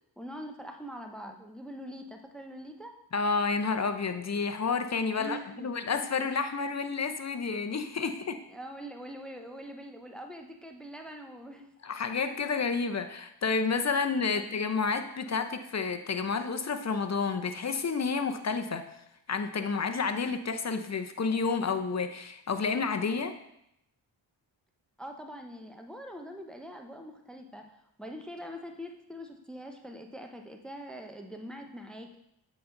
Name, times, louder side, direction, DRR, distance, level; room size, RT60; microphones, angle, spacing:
voice 1, 0.2-2.9 5.2-5.8 8.5-11.7 14.3-14.6 25.0-32.2, equal, ahead, 4 dB, 0.8 m, -43 dB
voice 2, 3.1-8.4 11.8-18.8 19.3-23.3, left 4 dB, 35° left, 8 dB, 0.7 m, -30 dB
7.8 x 4.1 x 3.9 m, 0.78 s
cardioid pair, 45°, 50 cm